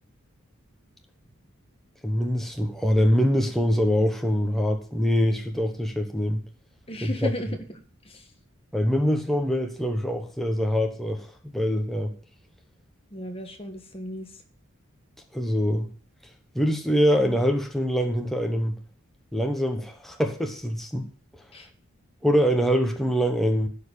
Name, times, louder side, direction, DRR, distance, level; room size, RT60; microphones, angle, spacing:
voice 1, 2.0-6.4 7.0-7.3 8.7-12.1 15.3-15.9 16.5-18.8 19.3-21.1 22.2-23.7, equal, ahead, 3 dB, 1.0 m, -24 dB
voice 2, 6.9-7.5 8.0-8.2 13.1-14.3 21.5-21.7, left 1 dB, 25° left, 6 dB, 1.4 m, -35 dB
12.0 x 4.6 x 8.3 m, 0.43 s
head